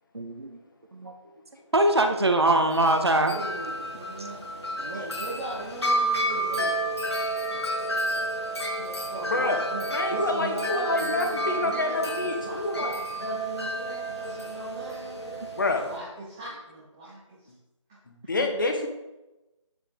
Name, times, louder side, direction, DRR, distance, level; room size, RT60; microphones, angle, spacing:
voice 1, 0.1-0.6 0.9-1.1 1.7-3.3 18.4-18.5, right 1 dB, 50° right, 5 dB, 1.5 m, -22 dB
Wind chime, 2.6-16.0, right 1 dB, 55° left, 1.8 m, -31 dB
voice 2, 2.9-4.4 4.8-6.8 8.8-15.5 15.8-17.5 17.9-18.0, right 1 dB, 5° right, -7 dB, 0.6 m, -38 dB
voice 3, 9.3-9.6 9.9-12.9 15.6-15.8 18.1-18.9, left 3 dB, 40° left, 4 dB, 1.7 m, -27 dB
10.0 x 9.4 x 3.9 m, 0.99 s
figure-of-eight pair, 160°, 17 cm